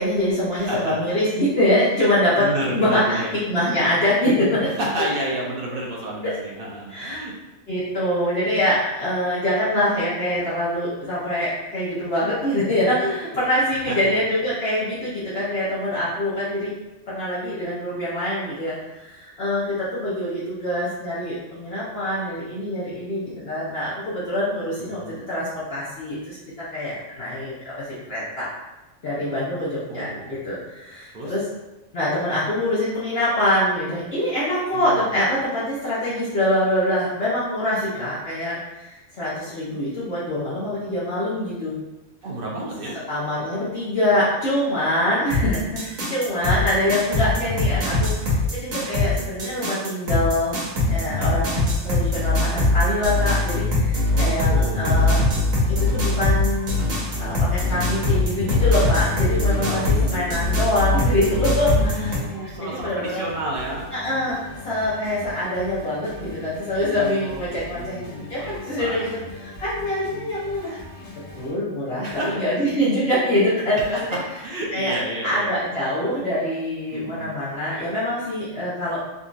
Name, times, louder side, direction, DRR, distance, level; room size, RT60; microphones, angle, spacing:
voice 1, 0.0-2.4 2.7-4.7 6.2-6.3 6.9-7.2 7.7-16.7 17.1-26.4 26.7-28.5 29.0-31.4 31.9-41.7 43.1-50.6 50.9-55.4 55.7-56.8 57.2-62.1 62.4-63.2 63.9-68.0 68.3-70.8 71.4-74.2 74.7-74.9 75.2-79.0, left 1 dB, 55° left, -10 dB, 1.0 m, -24 dB
voice 2, 0.5-1.2 2.4-3.3 4.6-7.3 13.8-14.1 24.8-25.2 29.9-30.3 31.1-31.3 34.7-35.1 42.2-43.0 47.8-48.3 54.1-55.1 59.3-60.2 61.7-63.9 66.9-69.2 72.0-72.4 73.8-74.0 74.3-75.6 76.9-77.3, right 1 dB, 55° right, -2 dB, 0.7 m, -31 dB
sound 1, 45.3-62.2, left 2 dB, 85° right, 1.3 m, -22 dB
sound 2, 55.5-71.5, left 1 dB, 80° left, 1.3 m, -40 dB
3.7 x 2.7 x 2.4 m, 1.1 s
omnidirectional pair, 1.4 m